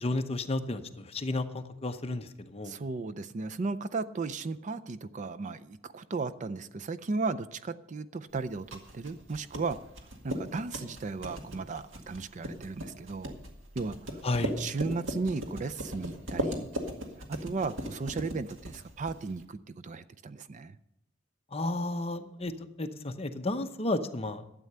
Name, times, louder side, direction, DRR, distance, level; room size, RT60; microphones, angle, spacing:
voice 1, 0.0-2.8 14.2-14.5 21.5-22.5 22.8-24.4, left 2 dB, 30° left, 7 dB, 0.8 m, -32 dB
voice 2, 2.6-9.8 10.2-13.3 13.8-14.0 14.6-16.7 17.3-20.8, right 4 dB, 40° right, 13 dB, 0.5 m, -35 dB
sound 1, 8.4-19.4, equal, 85° right, 2.0 m, -38 dB
12.5 x 8.4 x 6.7 m, 0.83 s
head